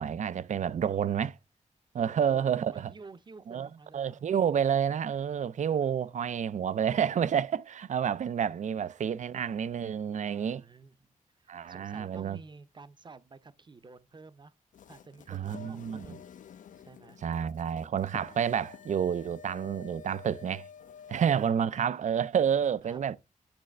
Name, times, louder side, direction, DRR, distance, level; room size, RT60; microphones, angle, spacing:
voice 1, 0.0-1.4 1.9-2.9 3.5-3.7 3.9-10.6 11.5-12.4 15.3-16.2 17.2-20.7 21.1-23.2, right 8 dB, 60° right, 0.4 m, -29 dB
voice 2, 2.0-4.2 10.2-11.1 11.4-14.5 14.9-16.2 16.8-17.2 21.7-23.0, right 4 dB, 35° right, 0.8 m, -51 dB
sound 1, 14.7-21.5, left 7 dB, 70° left, 0.4 m, -50 dB
8.8 x 3.2 x 6.5 m
cardioid pair, 90°, 14 cm